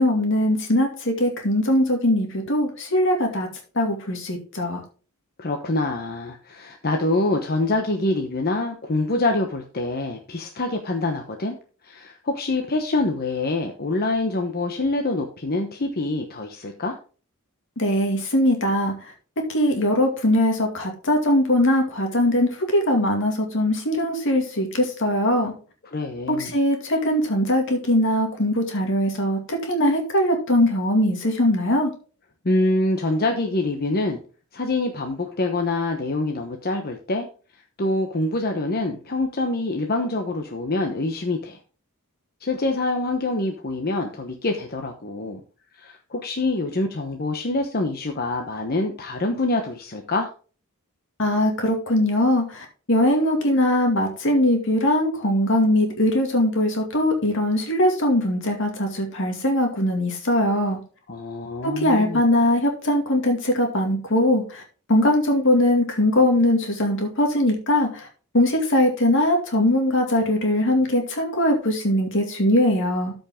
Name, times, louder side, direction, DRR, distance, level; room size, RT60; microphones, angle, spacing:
voice 1, 0.0-3.5 3.7-4.8 17.8-25.5 26.3-31.9 51.2-60.8 61.6-64.6 64.9-68.1 68.3-73.1, left 1 dB, 60° left, 3 dB, 2.2 m, -21 dB
voice 2, 5.4-11.6 11.8-17.0 25.8-26.6 32.4-34.2 34.5-37.3 37.8-41.6 42.4-45.4 45.8-50.3 61.1-62.2, left 2 dB, 45° left, 3 dB, 1.0 m, -25 dB
13.5 x 5.3 x 3.7 m, 0.37 s
head